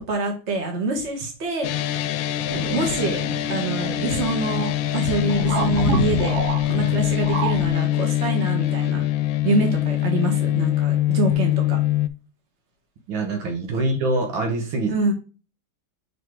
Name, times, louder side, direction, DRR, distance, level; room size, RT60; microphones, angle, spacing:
voice 1, 0.0-2.0 2.7-3.2 3.5-9.1 9.4-11.8 13.7-13.8 14.9-15.1, right 2 dB, 35° right, 2 dB, 1.8 m, -26 dB
sound 1, 1.6-12.1, left 14 dB, 85° left, 1.4 m, -23 dB
sound 2, 2.5-7.7, right 3 dB, 50° right, 1.6 m, -29 dB
voice 2, 13.1-14.9, right 2 dB, 80° right, 5 dB, 2.0 m, -24 dB
5.6 x 4.2 x 4.5 m, 0.33 s
omnidirectional pair, 2.2 m